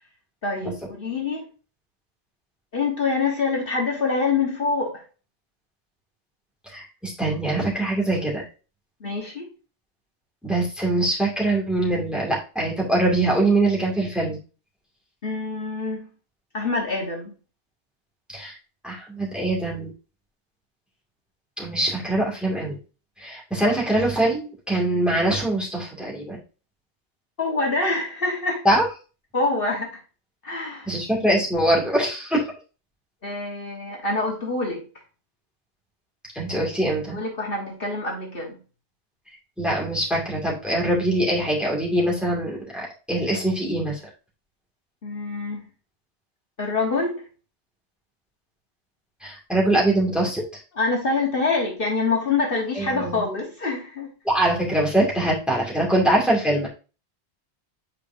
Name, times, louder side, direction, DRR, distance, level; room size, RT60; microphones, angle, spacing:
voice 1, 0.4-1.4 2.7-5.0 9.0-9.5 15.2-16.1 16.5-17.3 27.4-28.7 29.3-29.9 30.4-30.9 33.2-34.9 37.1-38.6 45.0-45.7 46.6-47.2 50.8-54.1, left 3 dB, 55° left, 1.7 m, -25 dB
voice 2, 6.7-8.5 10.4-14.4 18.3-18.6 18.8-19.9 21.6-22.8 23.2-26.4 28.6-28.9 30.9-32.5 36.3-37.2 39.6-44.0 49.2-50.4 52.7-53.2 54.3-56.7, right 1 dB, ahead, 2.3 m, -23 dB
8.5 x 4.9 x 2.7 m
omnidirectional pair, 1.2 m